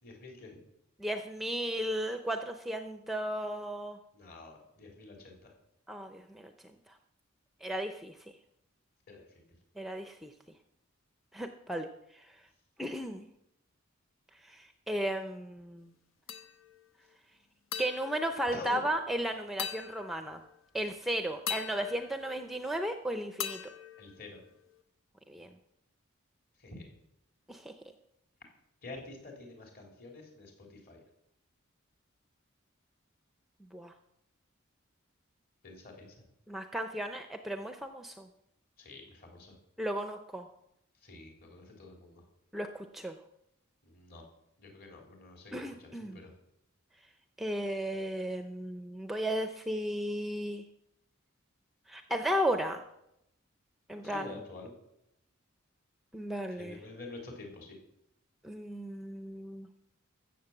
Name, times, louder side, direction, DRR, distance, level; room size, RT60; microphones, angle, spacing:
voice 1, 0.0-0.6 4.1-5.5 9.1-9.3 18.5-18.8 24.0-24.4 26.6-26.9 28.8-31.0 35.6-36.1 38.8-39.6 41.0-42.2 43.8-44.3 44.6-46.3 54.0-54.7 56.5-57.8, left 3 dB, 45° left, 1 dB, 3.6 m, -48 dB
voice 2, 1.0-4.0 5.9-6.5 7.6-8.2 9.8-10.3 11.3-12.3 12.8-13.2 14.4-15.9 17.8-20.4 20.7-23.6 25.3-25.5 27.5-27.7 33.7-33.9 36.5-38.3 39.8-40.5 42.5-43.2 45.5-46.2 47.4-50.7 51.9-52.8 53.9-54.4 56.1-56.8 58.4-59.7, right 1 dB, ahead, 7 dB, 0.6 m, -35 dB
sound 1, 16.3-16.9 17.7-19.1 19.6-20.6 21.5-22.9 23.4-24.8, left 8 dB, 70° left, 1.1 m, -42 dB
14.5 x 7.5 x 7.2 m, 0.81 s
head